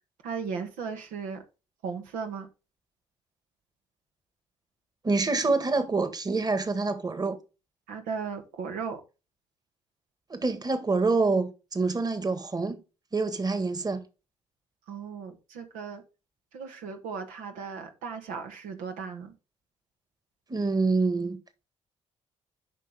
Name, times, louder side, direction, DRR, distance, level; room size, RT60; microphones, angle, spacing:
voice 1, 0.2-1.4 1.8-2.5 7.9-9.0 14.9-16.0 16.5-19.3, right 5 dB, 85° right, 1.4 m, -36 dB
voice 2, 5.0-7.4 10.3-12.8 13.1-14.0 20.5-21.4, right 3 dB, 30° right, 1.7 m, -26 dB
8.3 x 5.4 x 3.5 m
supercardioid pair, 60°, 13 cm